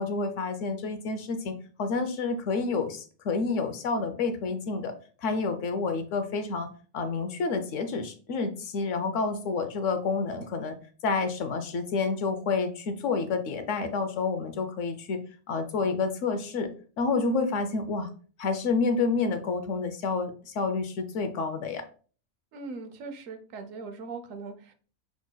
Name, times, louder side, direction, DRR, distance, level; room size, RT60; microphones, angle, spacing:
voice 1, 0.0-6.7 6.9-10.8 11.0-15.2 15.5-16.7 17.0-18.1 18.4-21.8, left 4 dB, 65° left, 8 dB, 0.9 m, -29 dB
voice 2, 22.5-24.7, right 4 dB, 70° right, 8 dB, 1.0 m, -40 dB
6.0 x 3.9 x 2.2 m, 0.40 s
omnidirectional pair, 1.5 m